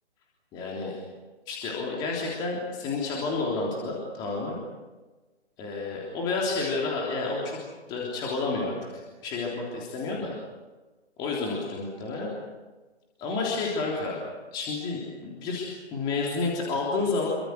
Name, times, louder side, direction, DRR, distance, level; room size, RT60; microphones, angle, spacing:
voice 1, 0.5-0.9 1.5-4.6 5.6-7.6 7.9-8.8 9.2-10.3 11.2-12.3 13.2-14.2 14.5-17.3, left 3 dB, 10° left, -3 dB, 3.4 m, -30 dB
29.0 x 25.0 x 6.5 m, 1.2 s
figure-of-eight pair, 145°, 34 cm